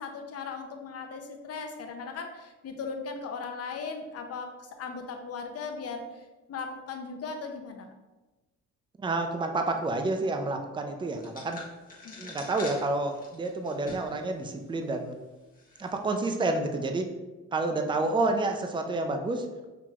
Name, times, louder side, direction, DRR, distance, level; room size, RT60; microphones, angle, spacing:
voice 1, 0.0-6.1 6.5-7.9 12.0-12.4, left 5 dB, 55° left, 5 dB, 0.7 m, -38 dB
voice 2, 9.0-11.6 12.2-15.2 15.8-17.1 17.5-19.5, right 2 dB, 15° right, 5 dB, 0.4 m, -29 dB
sound 1, 11.2-14.2 14.6-14.7 15.5-15.9, left 3 dB, 30° left, 1.1 m, -44 dB
5.8 x 2.9 x 2.4 m, 1.1 s
cardioid pair, 90°, 30 cm